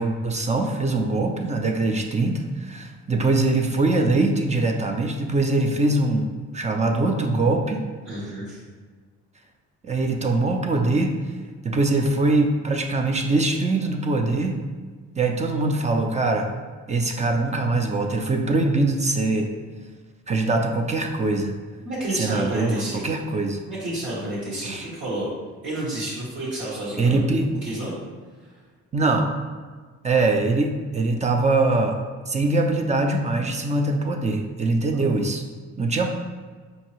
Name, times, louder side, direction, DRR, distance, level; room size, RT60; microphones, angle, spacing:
voice 1, 0.0-7.9 9.8-11.1 11.6-14.6 15.2-16.5 16.9-19.5 20.3-21.6 22.1-23.6 24.6-24.9 27.0-27.5 28.9-29.3 30.0-32.0 32.3-35.4 35.8-36.1, right 2 dB, 25° right, 3 dB, 0.4 m, -22 dB
voice 2, 8.0-8.6 21.8-23.1 23.7-25.3 25.6-27.2 27.6-27.9 34.9-35.0, right 1 dB, 80° right, -10 dB, 1.3 m, -30 dB
4.7 x 2.7 x 3.0 m, 1.5 s
cardioid pair, 90°, 30 cm